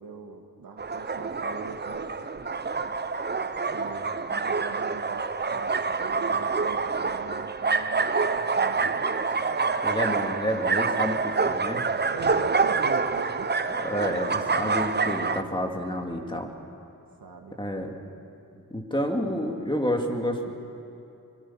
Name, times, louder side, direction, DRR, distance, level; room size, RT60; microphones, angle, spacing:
voice 1, 0.0-2.0 3.4-9.2 12.1-13.5 17.2-17.6, right 4 dB, 80° right, 3 dB, 2.1 m, -41 dB
sound 1, 0.8-15.4, right 4 dB, 30° right, 0.8 m, -27 dB
voice 2, 9.8-11.8 13.7-16.5 17.6-17.9 18.7-20.5, equal, 15° left, 2 dB, 2.7 m, -29 dB
24.5 x 24.0 x 5.8 m, 2.8 s
wide cardioid pair, 75°, 34 cm